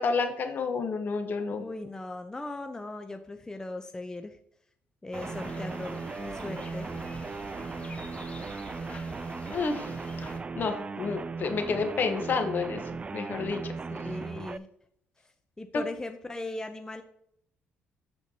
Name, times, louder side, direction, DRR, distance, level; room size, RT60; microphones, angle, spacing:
voice 1, 0.0-1.6 9.5-10.3 10.5-12.8 13.1-13.8 15.7-15.8, left 4 dB, 50° left, 6 dB, 1.2 m, -30 dB
voice 2, 1.6-4.4 5.0-7.1 14.0-14.7 15.6-17.0, left 2 dB, 15° left, 7 dB, 0.7 m, -38 dB
sound 1, 5.1-10.4, left 1 dB, 30° left, 1.8 m, -45 dB
sound 2, 5.1-14.6, right 4 dB, 30° right, 0.4 m, -37 dB
13.0 x 4.4 x 2.9 m, 0.70 s
supercardioid pair, 80°, 4 cm